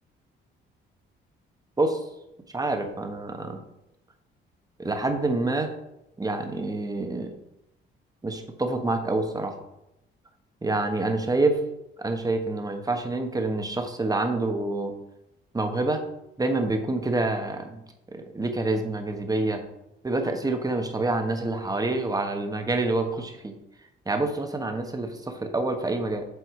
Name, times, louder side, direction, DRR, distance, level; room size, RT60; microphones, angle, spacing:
voice 1, 2.5-3.6 4.8-5.7 6.2-7.3 8.2-9.5 10.6-11.6 12.0-14.9 15.5-16.0 16.4-17.8 18.1-19.6 20.0-23.5 24.1-26.3, right 2 dB, 20° right, 5 dB, 1.2 m, -27 dB
8.1 x 4.5 x 4.8 m, 0.86 s
cardioid pair, 90°, 20 cm